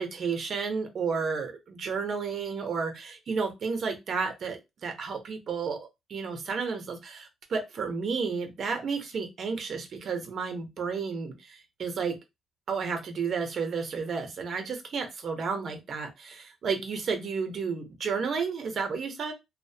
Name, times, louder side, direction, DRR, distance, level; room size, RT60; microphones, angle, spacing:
voice 1, 0.0-5.8 6.1-12.2 12.7-19.3, right 5 dB, 55° right, 5 dB, 0.7 m, -32 dB
2.5 x 2.1 x 2.6 m, 0.22 s
cardioid pair, 90°, 0 cm